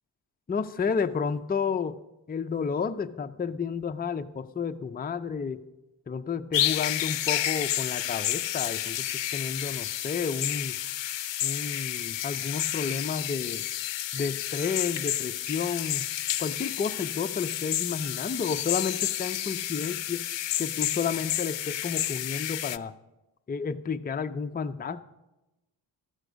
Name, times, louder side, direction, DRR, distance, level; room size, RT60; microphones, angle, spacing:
voice 1, 0.5-2.0 2.3-5.6 6.1-10.8 11.4-13.7 14.1-16.0 16.4-20.3 20.6-22.9 23.5-25.0, left 6 dB, 20° left, 8 dB, 0.4 m, -31 dB
sound 1, 6.5-22.8, left 12 dB, 65° left, 0.6 m, -30 dB
13.0 x 13.0 x 5.1 m, 1.0 s
wide cardioid pair, 95°, 48 cm